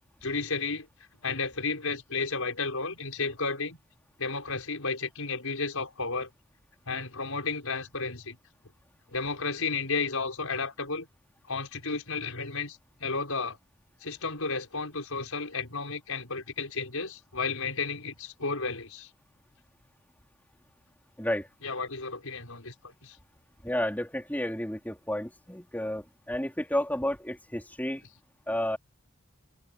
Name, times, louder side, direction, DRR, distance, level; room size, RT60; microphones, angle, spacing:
voice 1, 0.2-0.9 1.2-3.8 4.2-6.3 6.9-8.4 9.1-11.1 11.5-13.6 14.0-19.1 21.6-23.2, left 4 dB, 90° left, 5.5 m, -33 dB
voice 2, 21.2-21.5 23.6-28.0 28.5-28.8, left 1 dB, 10° left, 4.3 m, -31 dB
head